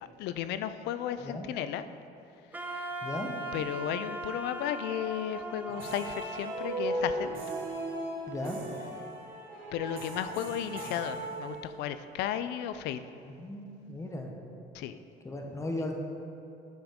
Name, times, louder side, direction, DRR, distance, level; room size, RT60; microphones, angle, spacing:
voice 1, 0.2-1.9 2.7-2.9 3.5-7.3 9.7-13.0 14.7-15.0, left 10 dB, 85° left, 12 dB, 0.4 m, -34 dB
Wind instrument woodwind instrument, 2.5-7.6, right 1 dB, 10° right, 0.7 m, -40 dB
sound 1, 5.7-12.0, right 1 dB, 60° right, 1.9 m, -37 dB
voice 2, 8.3-8.6 13.2-14.3 15.2-15.9, left 1 dB, 15° left, 2 dB, 1.0 m, -37 dB
9.2 x 6.9 x 3.6 m, 2.8 s
cardioid pair, 110°, 17 cm